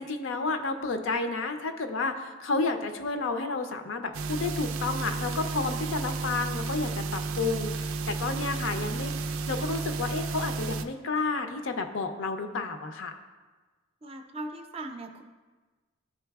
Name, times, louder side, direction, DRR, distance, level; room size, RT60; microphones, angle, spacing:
voice 1, 0.0-9.1 9.5-13.2, left 3 dB, 65° left, 7 dB, 0.5 m, -31 dB
sound 1, 4.1-10.8, right 4 dB, 90° right, 0.4 m, -32 dB
voice 2, 14.0-15.2, right 2 dB, 30° right, 4 dB, 0.4 m, -39 dB
11.0 x 3.9 x 2.3 m, 1.3 s
head